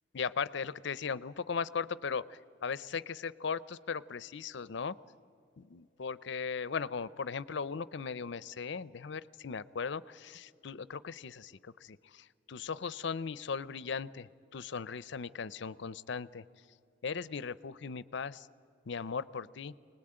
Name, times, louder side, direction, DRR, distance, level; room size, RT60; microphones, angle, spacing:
voice 1, 0.1-5.0 5.6-16.5 17.0-18.5 18.9-19.7, left 5 dB, 60° left, 19 dB, 0.5 m, -38 dB
25.5 x 19.5 x 8.8 m, 2.5 s
head